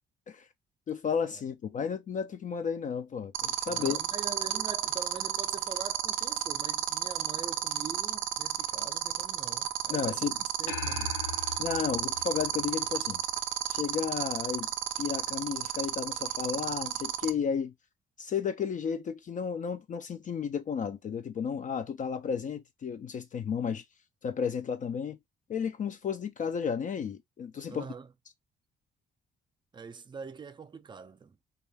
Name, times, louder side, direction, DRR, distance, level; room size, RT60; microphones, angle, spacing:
voice 1, 0.9-4.0 9.9-10.3 11.6-13.2 13.7-14.7 15.0-17.7 18.2-23.8 24.2-25.2 25.5-27.9, left 7 dB, 40° left, 0.4 m, -33 dB
sound 1, 3.3-17.3, right 13 dB, 85° right, 0.4 m, -31 dB
voice 2, 3.7-10.3 10.6-11.2 27.7-28.1 29.7-31.4, right 5 dB, 25° right, 0.4 m, -44 dB
sound 2, 10.7-13.3, left 6 dB, 90° left, 0.9 m, -40 dB
2.3 x 2.1 x 3.2 m
cardioid pair, 90°, 20 cm